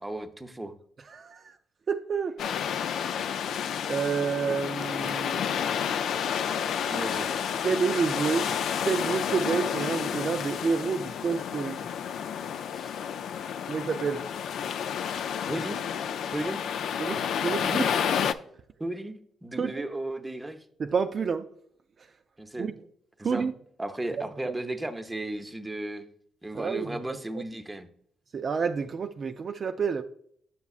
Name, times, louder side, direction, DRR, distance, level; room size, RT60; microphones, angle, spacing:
voice 1, 0.0-0.7 6.9-7.3 12.7-13.0 15.1-15.8 16.3-16.6 18.8-20.6 22.4-22.7 23.2-23.5 23.8-26.0 26.4-27.9, right 1 dB, 15° right, 0.6 m, -35 dB
voice 2, 1.1-1.6 1.9-2.6 3.9-5.4 7.6-8.5 8.8-11.8 13.7-14.2 17.0-17.9 19.6-19.9 20.8-21.5 22.6-22.8 23.2-23.5 24.2-24.5 26.5-27.4 28.3-30.0, right 5 dB, 45° right, 0.3 m, -29 dB
sound 1, 2.4-18.3, left 8 dB, 75° left, 0.3 m, -30 dB
7.2 x 6.8 x 2.4 m
cardioid pair, 90°, 0 cm